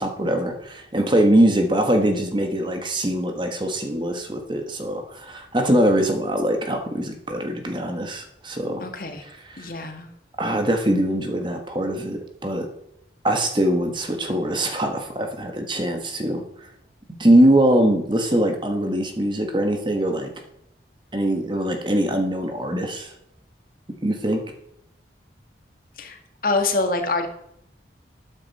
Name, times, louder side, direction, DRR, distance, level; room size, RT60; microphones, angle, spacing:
voice 1, 0.0-8.8 9.5-9.7 10.4-12.7 13.2-16.4 17.2-20.3 21.1-23.1 24.0-24.4, right 1 dB, 25° right, 4 dB, 1.4 m, -22 dB
voice 2, 8.8-9.2 9.6-10.1 26.0-27.3, left 3 dB, 50° left, 5 dB, 1.6 m, -25 dB
13.0 x 9.4 x 4.2 m, 0.75 s
head